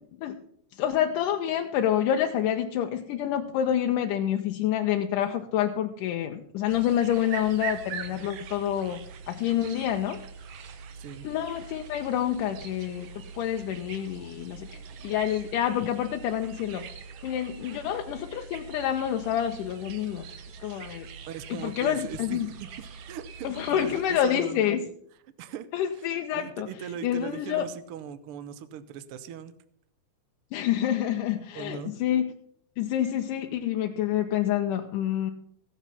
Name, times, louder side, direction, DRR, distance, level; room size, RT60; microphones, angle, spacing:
voice 1, 0.7-9.0 9.3-10.2 11.2-13.1 13.4-16.9 17.2-20.3 20.6-21.1 21.5-22.5 23.4-24.9 25.7-26.7 27.0-27.7 30.5-32.3 32.8-35.3, left 10 dB, 85° left, 4 dB, 2.3 m, -27 dB
sound 1, 6.7-24.2, right 6 dB, 65° right, 1.7 m, -43 dB
voice 2, 10.9-11.3 21.3-22.5 22.8-24.8 25.4-25.7 25.9-29.5 31.5-32.0, right 8 dB, 85° right, 13 dB, 1.2 m, -40 dB
16.5 x 7.2 x 5.7 m, 0.69 s
omnidirectional pair, 3.7 m